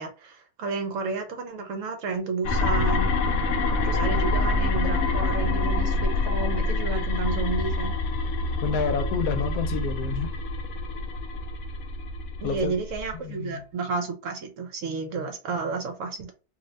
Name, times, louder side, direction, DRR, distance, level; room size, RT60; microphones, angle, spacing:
voice 1, 0.0-3.1 3.8-7.9 12.4-16.3, right 4 dB, 65° right, 0.9 m, -31 dB
sound 1, 2.4-13.2, left 2 dB, 65° left, 0.8 m, -26 dB
voice 2, 8.6-10.3 12.4-12.7 13.2-13.7, left 7 dB, 85° left, 1.1 m, -29 dB
2.7 x 2.6 x 3.1 m
omnidirectional pair, 1.6 m